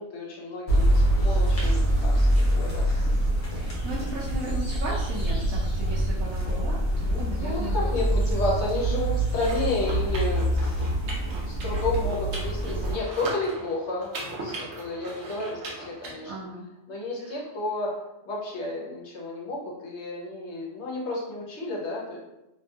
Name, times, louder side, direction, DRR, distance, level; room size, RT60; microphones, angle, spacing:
voice 1, 0.0-3.1 7.4-11.1 11.5-16.3 16.9-17.9 18.2-22.2, left 2 dB, 60° left, -3 dB, 0.8 m, -32 dB
sound 1, 0.7-12.9, right 1 dB, 35° left, 0.6 m, -25 dB
voice 2, 3.5-7.9 8.3-8.4 16.3-16.7 17.2-17.4, right 2 dB, 80° right, -6 dB, 1.0 m, -36 dB
sound 2, 9.3-16.1, right 2 dB, 60° right, 0.9 m, -38 dB
2.8 x 2.6 x 2.3 m, 0.94 s
omnidirectional pair, 1.5 m